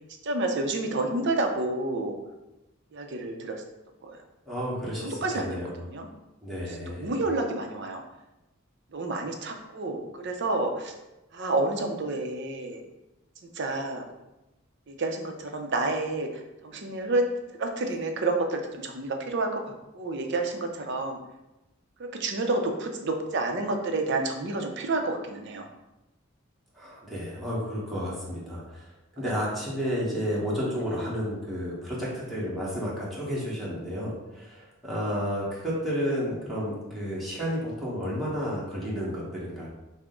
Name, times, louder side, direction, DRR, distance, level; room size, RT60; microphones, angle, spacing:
voice 1, 0.2-2.2 2.9-3.6 4.0-4.2 5.0-5.6 5.9-6.1 7.0-8.0 8.9-10.9 11.3-12.8 13.5-14.0 14.9-17.2 17.6-21.2 22.0-25.7 29.2-29.3, right 2 dB, 60° right, 4 dB, 0.6 m, -29 dB
voice 2, 4.5-5.8 6.4-7.1 26.7-28.9 29.1-39.7, equal, ahead, -7 dB, 1.1 m, -31 dB
5.8 x 2.1 x 3.7 m, 0.99 s
head